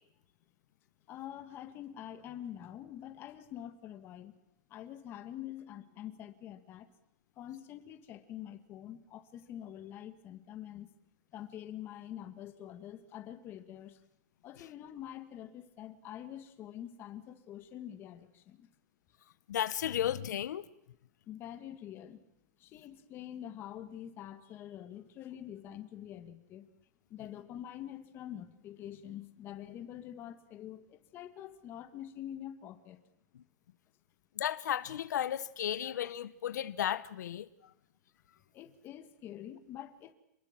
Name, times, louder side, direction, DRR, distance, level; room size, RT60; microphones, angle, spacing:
voice 1, 1.1-4.4 4.7-6.9 7.4-10.9 11.3-14.0 14.4-18.7 21.3-22.2 22.6-26.7 27.1-33.0 38.5-40.1, left 11 dB, 25° left, 1.8 m, -46 dB
voice 2, 19.5-20.6 34.4-37.5, left 10 dB, 80° left, 1.0 m, -34 dB
28.0 x 20.5 x 7.5 m
supercardioid pair, 165°, 9 cm